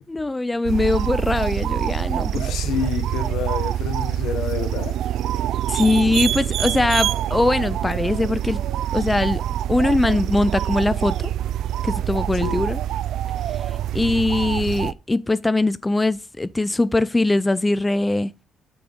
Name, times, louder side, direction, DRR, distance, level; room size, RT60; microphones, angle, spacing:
voice 1, 0.1-2.3 5.7-8.6 8.9-9.4 9.7-11.2 11.8-12.8 13.9-18.3, left 2 dB, 15° left, 0.4 m, -21 dB
sound 1, 0.6-14.9, right 11 dB, 80° right, 0.3 m, -25 dB
voice 2, 2.3-5.0 12.4-12.7, left 7 dB, 85° left, 1.1 m, -28 dB
8.4 x 6.1 x 3.6 m
cardioid pair, 90°, 0 cm